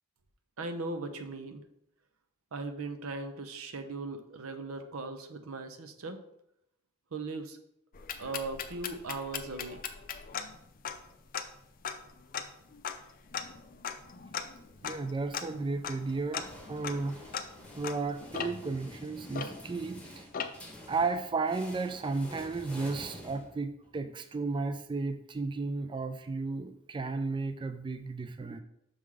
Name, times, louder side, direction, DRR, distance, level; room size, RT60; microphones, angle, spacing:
voice 1, 0.6-1.6 2.5-6.2 7.1-7.6 8.2-9.8, right 3 dB, 90° right, 8 dB, 0.7 m, -38 dB
sound 1, 7.9-20.0 20.3-20.8, left 7 dB, 40° left, 0.5 m, -40 dB
voice 2, 14.8-17.3 17.7-20.3 20.9-28.6, right 3 dB, 25° right, 9 dB, 0.3 m, -34 dB
sound 2, 16.0-24.0, left 1 dB, 5° left, 1.1 m, -49 dB
5.9 x 3.8 x 4.8 m, 0.77 s
head